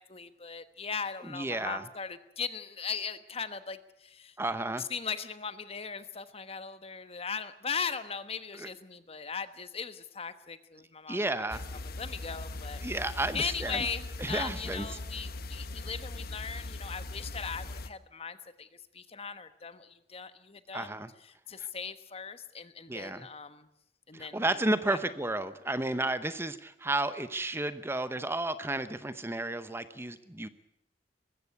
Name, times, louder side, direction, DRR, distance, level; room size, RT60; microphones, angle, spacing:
voice 1, 0.0-4.4 4.8-11.6 12.0-12.8 13.3-18.7 18.9-23.7 24.1-24.6 24.9-25.0, left 6 dB, 35° left, 12 dB, 1.2 m, -39 dB
voice 2, 1.3-1.8 4.4-4.9 8.6-8.7 11.1-11.6 12.8-13.8 14.2-14.9 20.7-21.1 22.9-23.3 24.1-30.5, right 2 dB, 15° right, 13 dB, 0.8 m, -32 dB
sound 1, 11.5-17.9, left 2 dB, 60° left, 1.0 m, -40 dB
20.5 x 15.5 x 9.6 m, 0.81 s
head